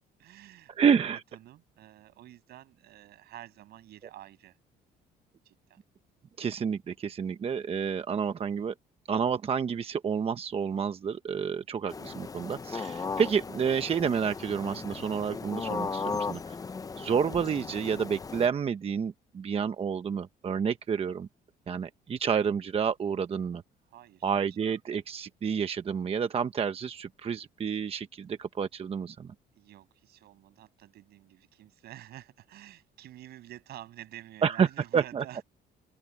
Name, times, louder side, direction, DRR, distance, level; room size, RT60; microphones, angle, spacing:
voice 1, 0.2-4.6 5.4-5.8 21.6-21.7 23.9-24.3 29.5-35.4, right 14 dB, 70° right, 7.6 m, -49 dB
voice 2, 0.8-1.2 6.4-8.7 9.1-16.6 17.0-21.3 21.7-23.6 24.2-29.3 34.4-34.7 34.9-35.2, right 7 dB, 35° right, 1.0 m, -29 dB
sound 1, 11.9-18.5, left 5 dB, 20° left, 0.6 m, -37 dB
open air
cardioid pair, 110°, 17 cm